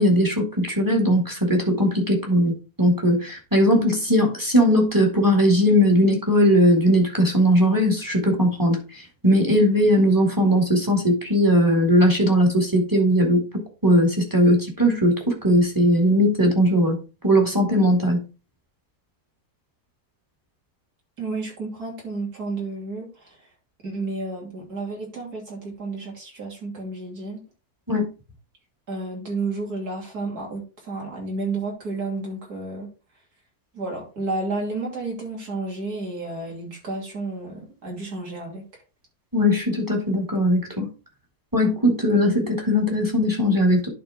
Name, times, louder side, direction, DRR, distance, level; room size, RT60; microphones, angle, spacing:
voice 1, 0.0-2.5 2.8-8.8 9.2-13.4 13.8-17.0 17.2-18.2 27.9-28.1 39.3-40.9 41.5-43.9, equal, 10° right, 2.3 m, -19 dB
voice 2, 21.2-23.4 23.8-27.4 28.9-32.9 33.7-38.6, right 3 dB, 75° right, 3.5 m, -31 dB
11.0 x 4.4 x 3.6 m
omnidirectional pair, 1.7 m